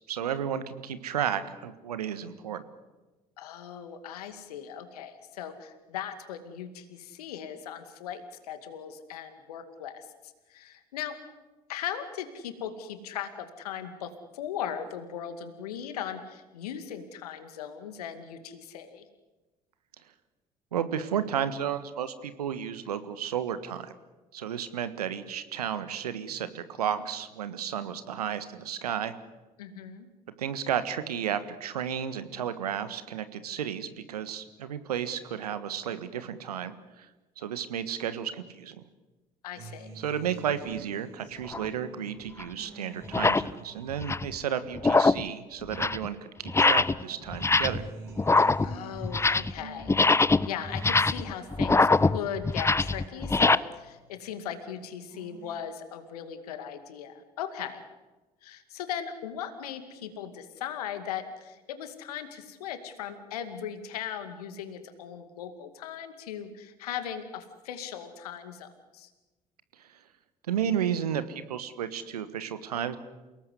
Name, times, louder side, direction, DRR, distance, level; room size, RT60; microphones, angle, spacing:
voice 1, 0.1-2.6 20.7-23.9 24.3-29.1 30.4-37.1 37.4-38.8 40.0-47.8 70.5-73.0, right 9 dB, 80° right, 12 dB, 1.5 m, -32 dB
voice 2, 3.4-10.1 10.5-11.2 11.7-19.0 29.6-30.1 39.4-39.9 48.6-49.9 50.4-57.8 58.4-69.1, left 9 dB, 75° left, 9 dB, 2.3 m, -38 dB
Acoustic guitar, 39.6-46.2 46.6-54.2 54.6-55.6, right 4 dB, 65° right, 5.6 m, -49 dB
sound 1, 41.5-41.7 42.4-42.5 43.0-43.5 43.9-44.4 44.8-45.3 45.6-46.1 46.5-47.0 47.3-47.9 48.2-49.6 49.9-53.6, left 3 dB, 15° left, 0.7 m, -23 dB
28.5 x 18.0 x 8.1 m, 1.2 s
figure-of-eight pair, 55°, 20 cm